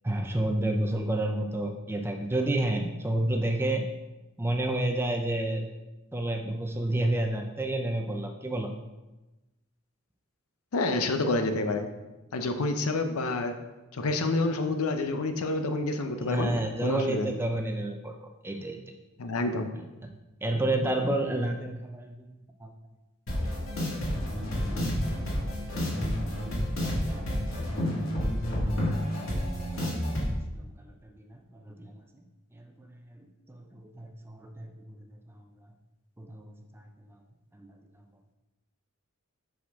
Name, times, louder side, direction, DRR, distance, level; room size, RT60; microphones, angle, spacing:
voice 1, 0.0-3.9 4.4-5.6 6.1-8.7 16.2-18.1 18.4-18.8 20.4-22.7 27.1-27.8 28.4-28.6 29.2-29.3 29.8-30.0 30.3-32.0 32.5-35.1 36.2-36.9 37.6-37.7, right 1 dB, 10° right, 4 dB, 0.4 m, -30 dB
voice 2, 10.7-11.9 12.3-13.6 13.9-17.3 19.2-19.7, left 2 dB, 85° left, 7 dB, 0.6 m, -28 dB
sound 1, 23.3-30.3, equal, 65° left, 1.9 m, -30 dB
5.8 x 5.0 x 3.5 m, 1.1 s
head